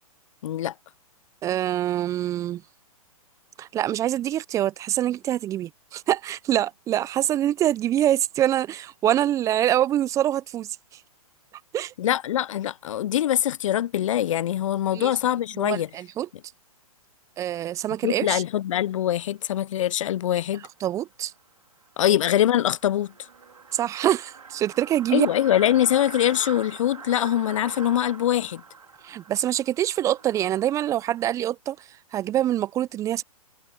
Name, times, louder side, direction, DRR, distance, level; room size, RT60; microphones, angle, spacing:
voice 1, 0.4-0.7 12.0-15.9 18.0-20.6 22.0-23.1 25.1-28.6, left 11 dB, 60° left, 0.4 m, -23 dB
voice 2, 1.4-2.6 3.6-10.7 11.7-11.9 14.9-15.1 15.6-16.3 17.4-18.4 20.8-21.3 23.7-25.3 29.0-31.8 32.1-33.2, right 12 dB, 15° right, 0.5 m, -25 dB
sound 1, 21.3-21.4 21.8-21.9 22.2-22.3 22.5-31.3, right 5 dB, 80° right, 4.3 m, -43 dB
hypercardioid pair, 125°, 19 cm